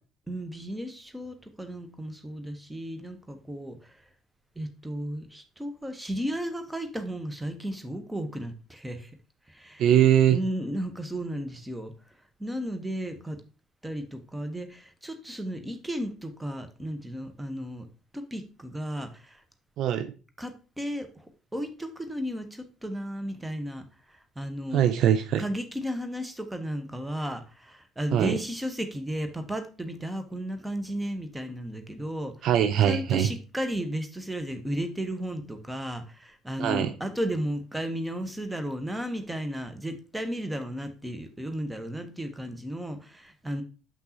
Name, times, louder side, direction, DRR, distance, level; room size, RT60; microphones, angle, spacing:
voice 1, 0.3-3.8 4.6-9.1 9.5-9.9 10.3-11.9 12.4-13.4 13.8-17.9 18.1-19.4 20.4-21.1 21.5-23.8 24.4-24.9 25.4-32.3 32.8-43.6, equal, 10° right, 1.1 m, -34 dB
voice 2, 9.8-10.4 19.8-20.1 24.7-25.4 28.1-28.4 32.4-33.3 36.6-36.9, right 10 dB, 55° right, 0.4 m, -22 dB
6.7 x 5.9 x 2.9 m
figure-of-eight pair, 50°, 0 cm